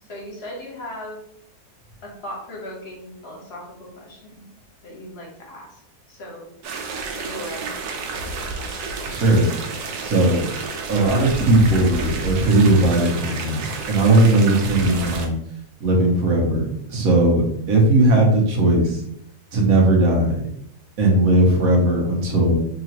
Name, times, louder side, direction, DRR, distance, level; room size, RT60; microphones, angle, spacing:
voice 1, 0.1-1.2 2.0-4.5 4.8-5.8 6.1-6.5 7.1-8.0, left 1 dB, 45° left, -1 dB, 1.1 m, -37 dB
sound 1, 6.6-15.3, right 4 dB, 85° right, 1.2 m, -30 dB
voice 2, 9.0-9.5 10.0-10.5 10.9-15.4 15.8-19.0 19.5-20.4 21.0-22.6, right 2 dB, 65° right, -1 dB, 1.3 m, -18 dB
3.8 x 2.9 x 2.9 m, 0.73 s
omnidirectional pair, 1.7 m